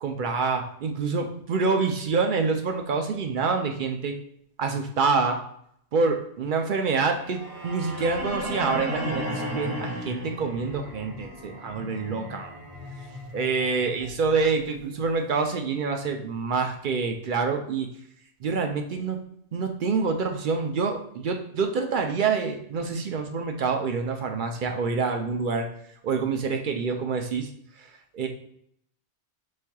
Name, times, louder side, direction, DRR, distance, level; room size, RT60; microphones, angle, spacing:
voice 1, 0.0-4.2 4.6-5.4 5.9-12.5 13.3-17.9 18.4-19.2 19.5-25.7 26.0-27.5 28.1-28.3, right 4 dB, 60° right, 4 dB, 0.6 m, -26 dB
sound 1, 7.1-15.2, equal, 20° right, 1.9 m, -35 dB
4.8 x 4.3 x 2.2 m, 0.70 s
omnidirectional pair, 1.1 m